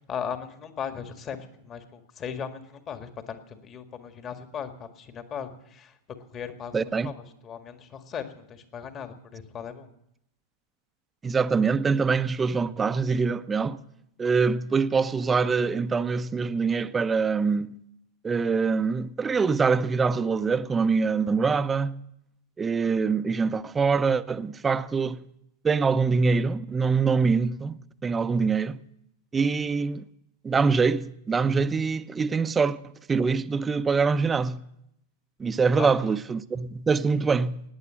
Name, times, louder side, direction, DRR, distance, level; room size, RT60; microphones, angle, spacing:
voice 1, 0.1-1.4 1.6-5.9 6.3-9.9 35.7-35.9, left 7 dB, 35° left, 1.8 m, -37 dB
voice 2, 6.7-7.1 11.2-13.8 14.2-17.8 18.2-22.0 22.6-25.2 25.6-28.8 29.3-30.0 30.4-32.8 33.1-34.6 35.4-37.6, right 5 dB, 20° right, 0.7 m, -24 dB
18.0 x 9.5 x 7.6 m
hypercardioid pair, 100°, 0 cm